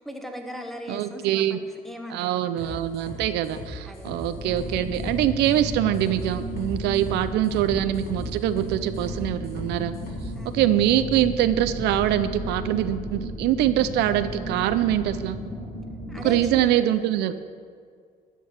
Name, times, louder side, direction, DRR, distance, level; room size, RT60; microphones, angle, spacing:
voice 1, 0.0-2.8 3.9-4.1 10.3-10.5 16.1-16.7, equal, ahead, 4 dB, 1.2 m, -38 dB
voice 2, 0.9-1.6 2.1-9.9 10.5-15.4 16.2-17.3, right 12 dB, 80° right, 12 dB, 0.5 m, -24 dB
sound 1, 2.6-10.3, left 1 dB, 65° left, 3.0 m, -38 dB
sound 2, 4.3-16.5, equal, 30° left, 2.4 m, -34 dB
12.5 x 4.6 x 8.3 m, 2.1 s
cardioid pair, 110°, 17 cm